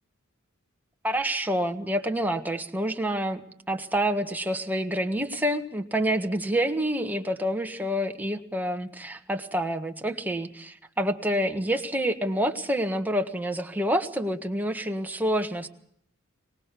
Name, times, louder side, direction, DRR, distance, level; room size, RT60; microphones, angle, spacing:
voice 1, 1.0-3.4 3.7-15.7, equal, 10° right, 5 dB, 1.5 m, -27 dB
24.5 x 19.5 x 6.9 m, 0.69 s
head